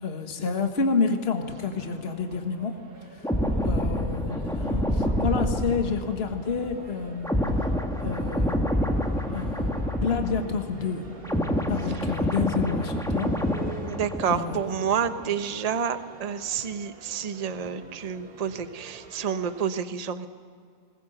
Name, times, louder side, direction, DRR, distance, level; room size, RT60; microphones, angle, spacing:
voice 1, 0.0-2.7 3.1-3.2 3.6-7.4 8.0-8.7 9.3-9.7 10.0-11.0 11.7-13.4 14.3-14.6, left 5 dB, 45° left, 5 dB, 1.7 m, -29 dB
sound 1, 1.4-19.6, right 4 dB, 90° right, 2.5 m, -47 dB
Vinyl Record Scratch Sound, 3.2-10.7 11.0-14.7 15.0-15.3, left 1 dB, ahead, 1.4 m, -27 dB
voice 2, 13.8-20.3, right 7 dB, 30° right, 10 dB, 0.9 m, -29 dB
21.0 x 20.0 x 8.0 m, 2.2 s
omnidirectional pair, 1.5 m